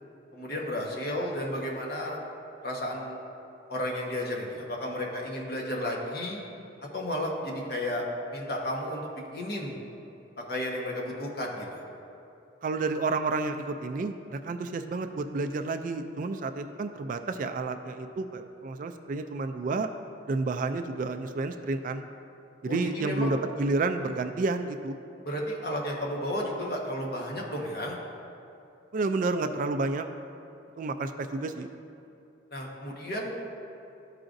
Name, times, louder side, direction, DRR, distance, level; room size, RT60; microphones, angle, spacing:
voice 1, 0.3-2.2 2.6-3.2 3.7-6.4 6.9-8.0 8.3-9.7 10.5-11.8 22.7-23.3 25.2-28.0 32.5-33.3, left 1 dB, 55° left, -2 dB, 1.2 m, -33 dB
voice 2, 12.6-19.9 20.3-22.0 22.6-25.0 28.9-30.0 30.8-31.7, right 3 dB, 45° right, 7 dB, 0.3 m, -30 dB
12.5 x 4.9 x 2.6 m, 2.7 s
head